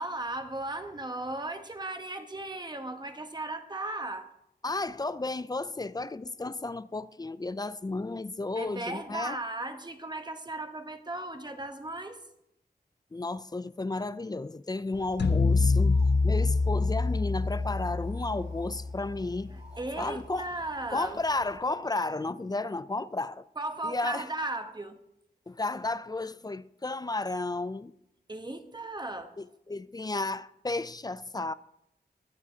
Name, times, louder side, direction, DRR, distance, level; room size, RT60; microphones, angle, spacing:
voice 1, 0.0-4.3 8.5-12.2 19.8-21.2 23.6-25.0 28.3-29.3, right 2 dB, 25° right, 1.0 m, -36 dB
voice 2, 4.6-9.4 13.1-19.6 20.0-20.5 20.9-23.5 23.8-24.3 25.5-27.9 29.4-31.5, left 2 dB, 25° left, 0.4 m, -33 dB
sound 1, 14.9-21.6, equal, 50° right, 3.7 m, -52 dB
sound 2, 15.2-19.5, left 3 dB, 80° left, 0.6 m, -26 dB
21.5 x 7.6 x 2.8 m
wide cardioid pair, 85°, 17 cm